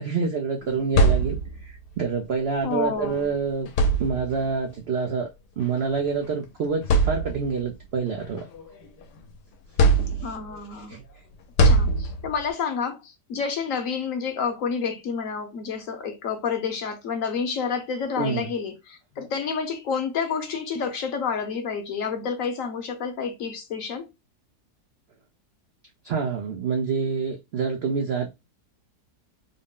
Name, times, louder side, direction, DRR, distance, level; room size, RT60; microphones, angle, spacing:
voice 1, 0.0-1.4 1.6-3.7 4.0-5.3 5.6-8.5 10.2-10.4 10.7-11.0 18.2-18.5 26.0-28.3, right 5 dB, 75° right, 0.5 m, -27 dB
sound 1, 0.6-1.8 3.0-3.2 3.7-4.5 5.6-5.8 6.3-6.4 6.8-7.7 8.2-9.2 9.8-10.6 11.6-12.5, right 2 dB, 85° left, 1.3 m, -22 dB
voice 2, 2.6-3.3 10.2-11.0 11.6-24.1, left 6 dB, 60° left, 1.0 m, -29 dB
3.9 x 2.0 x 3.6 m
omnidirectional pair, 1.7 m